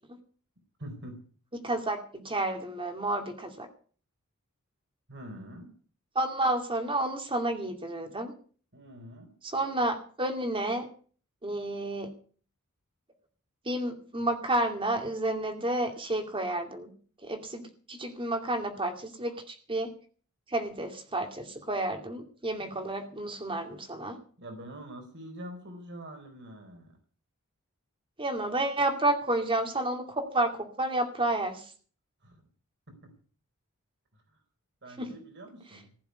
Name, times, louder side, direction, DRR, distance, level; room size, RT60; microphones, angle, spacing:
voice 1, 0.8-1.2 5.1-5.7 8.7-9.3 19.3-19.4 22.7-22.8 24.4-26.9 32.2-32.4 32.9-33.1 34.8-35.9, equal, 55° right, 5 dB, 4.1 m, -45 dB
voice 2, 1.5-3.7 6.1-8.3 9.4-10.9 11.4-12.1 13.6-16.9 17.2-19.9 20.5-24.2 28.2-31.7 35.0-35.1, right 1 dB, 25° right, 5 dB, 2.6 m, -30 dB
15.5 x 7.1 x 9.7 m, 0.43 s
head